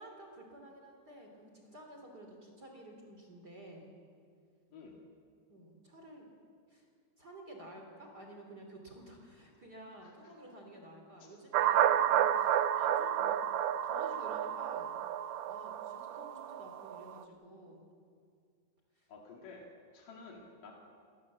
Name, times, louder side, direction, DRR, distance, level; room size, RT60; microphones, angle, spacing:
voice 1, 0.0-3.9 5.5-6.3 6.7-6.9 7.2-13.4 13.8-14.9 15.5-17.8 19.0-19.1, right 1 dB, 30° right, 1 dB, 3.4 m, -52 dB
sound 1, 11.5-17.1, right 10 dB, 85° right, 2.3 m, -31 dB
voice 2, 19.1-19.7 19.9-20.7, left 4 dB, 90° left, -1 dB, 4.0 m, -51 dB
29.5 x 18.5 x 7.4 m, 2.2 s
omnidirectional pair, 3.7 m